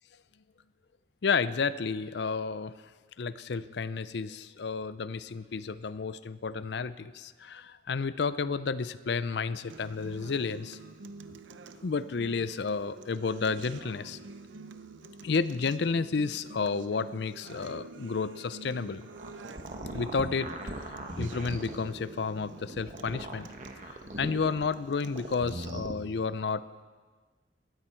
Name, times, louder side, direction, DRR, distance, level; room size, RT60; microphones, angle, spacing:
voice 1, 1.2-2.7 3.2-10.8 11.8-14.2 15.2-19.0 19.9-20.5 20.8-20.9 21.2-23.5 24.2-26.6, left 5 dB, 65° left, 15 dB, 0.5 m, -31 dB
Acoustic guitar, 9.7-25.7, right 3 dB, 90° right, 0.7 m, -48 dB
sound 1, 19.0-21.8 22.5-24.7 25.0-25.9, right 1 dB, 40° right, 1.2 m, -39 dB
18.5 x 13.0 x 4.5 m, 1.4 s
head